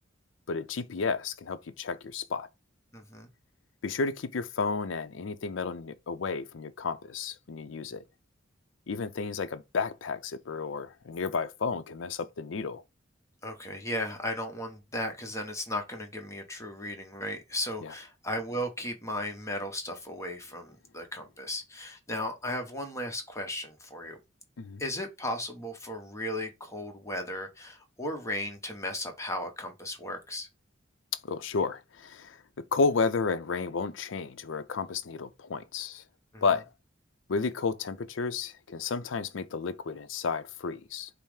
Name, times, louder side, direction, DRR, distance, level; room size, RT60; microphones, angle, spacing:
voice 1, 0.5-2.5 3.8-8.0 8.9-12.8 17.8-17.9 24.6-24.8 31.2-32.4 32.7-36.0 36.4-36.7 37.3-41.1, left 4 dB, 75° left, 0.5 m, -32 dB
voice 2, 2.9-3.3 13.4-24.2 24.8-30.5 36.3-36.4, left 1 dB, 15° left, 0.8 m, -36 dB
5.5 x 2.0 x 4.8 m
head